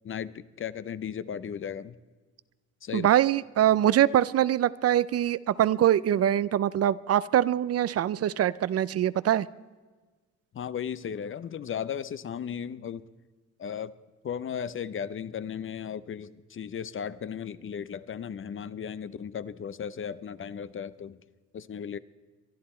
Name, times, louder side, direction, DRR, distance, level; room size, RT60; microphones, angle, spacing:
voice 1, 0.0-2.0 2.8-3.1 10.5-13.0 13.6-14.0 14.2-21.2 21.5-22.0, left 8 dB, 45° left, 16 dB, 0.7 m, -36 dB
voice 2, 2.9-9.5, right 11 dB, 55° right, 18 dB, 0.5 m, -23 dB
23.0 x 11.5 x 4.3 m, 1.3 s
cardioid pair, 90°, 30 cm